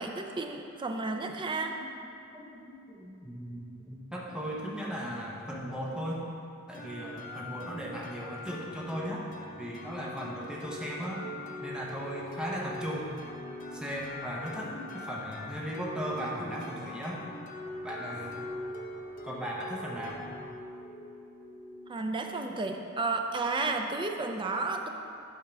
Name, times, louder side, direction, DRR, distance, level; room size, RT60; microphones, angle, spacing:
voice 1, 0.0-1.7 21.9-24.9, right 3 dB, 25° right, 4 dB, 0.4 m, -32 dB
voice 2, 1.5-1.9 2.3-6.2 6.7-11.2 11.6-13.1 13.7-17.2 17.8-18.5 19.2-20.2, equal, 5° right, -4 dB, 0.8 m, -37 dB
sound 1, 6.7-22.4, left 1 dB, 40° left, 0.8 m, -43 dB
8.5 x 3.7 x 5.9 m, 2.6 s
head